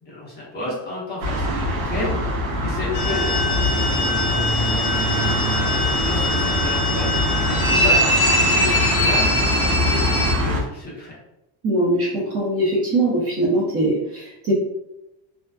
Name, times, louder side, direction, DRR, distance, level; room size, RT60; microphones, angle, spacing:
voice 1, 0.0-4.4 5.2-7.1 7.4-8.0 8.4-9.3 9.7-11.2, left 2 dB, 20° left, -7 dB, 0.9 m, -32 dB
sound 1, 1.2-10.6, equal, 70° right, 0.9 m, -23 dB
sound 2, 2.9-10.3, left 1 dB, 55° left, 1.0 m, -22 dB
voice 2, 11.6-14.5, right 1 dB, 30° right, -6 dB, 0.6 m, -21 dB
2.4 x 2.4 x 2.3 m, 0.89 s
cardioid pair, 135°, 49 cm